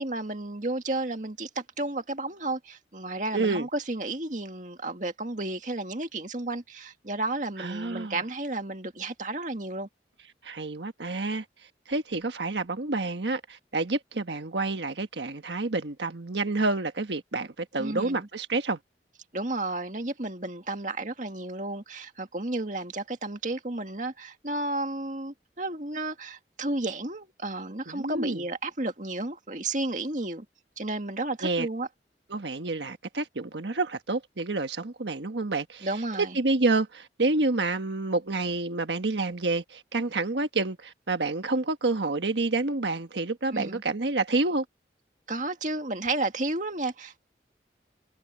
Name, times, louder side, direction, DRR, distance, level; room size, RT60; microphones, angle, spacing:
voice 1, 0.0-9.9 17.8-18.3 19.3-30.5 30.8-31.9 35.8-36.4 43.5-43.8 45.3-47.2, right 2 dB, 45° right, 2.1 m, -32 dB
voice 2, 3.3-3.6 7.6-8.2 10.4-11.4 11.9-18.8 27.9-28.4 31.4-31.7 32.3-35.9 36.2-44.6, right 3 dB, 85° right, 1.4 m, -28 dB
head